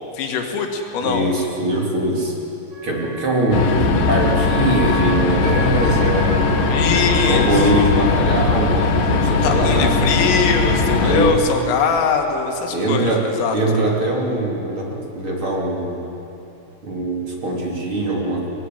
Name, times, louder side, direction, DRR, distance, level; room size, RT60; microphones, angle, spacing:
voice 1, 0.1-1.3 6.7-7.5 9.4-13.6, left 5 dB, 90° left, 3 dB, 4.7 m, -21 dB
voice 2, 1.0-2.3 2.8-6.7 7.2-9.9 11.0-11.3 12.7-13.2 13.5-16.1 16.8-18.5, right 1 dB, 30° right, -1 dB, 3.0 m, -22 dB
Wind instrument woodwind instrument, 2.7-7.8, right 1 dB, 80° right, 8.9 m, -33 dB
sound 1, 3.5-11.3, left 4 dB, 60° left, 2.4 m, -19 dB
23.5 x 20.0 x 9.4 m, 2.9 s
omnidirectional pair, 5.6 m